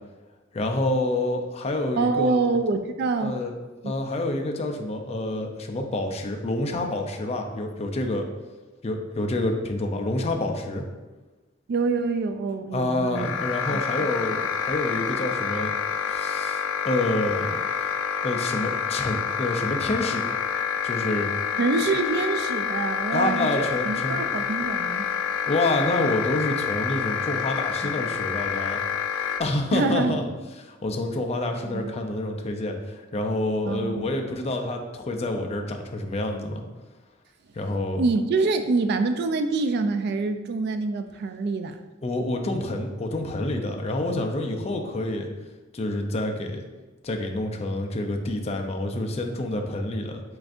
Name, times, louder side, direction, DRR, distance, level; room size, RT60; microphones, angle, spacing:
voice 1, 0.5-2.4 3.2-3.5 3.8-8.3 8.8-10.8 12.7-15.7 16.1-17.6 18.2-20.4 20.8-21.3 23.1-24.2 25.4-28.8 29.2-30.2 30.7-36.6 37.5-38.0 42.0-45.3 45.7-46.7 47.0-50.2, left 2 dB, 30° left, 3 dB, 0.5 m, -28 dB
voice 2, 2.0-3.4 3.8-3.9 11.7-13.4 13.7-13.8 21.6-25.1 27.8-28.0 29.7-30.2 31.6-31.9 33.6-34.1 38.0-41.8, right 3 dB, 55° right, 8 dB, 0.3 m, -26 dB
sound 1, 13.2-29.4, left 7 dB, 90° left, 0.4 m, -28 dB
7.7 x 2.6 x 2.5 m, 1.2 s
head